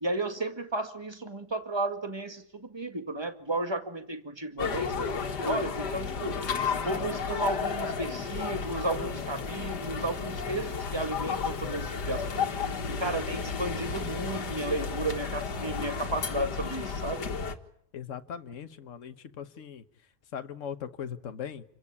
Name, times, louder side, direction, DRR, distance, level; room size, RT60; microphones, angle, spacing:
voice 1, 0.0-6.4 6.8-12.5 12.9-17.3, right 2 dB, 15° right, 7 dB, 1.9 m, -33 dB
sound 1, 4.6-17.6, left 5 dB, 85° left, 2.2 m, -33 dB
voice 2, 17.9-19.8 20.3-21.6, left 8 dB, 50° left, 10 dB, 1.4 m, -39 dB
28.0 x 16.0 x 9.8 m, 0.73 s
omnidirectional pair, 1.7 m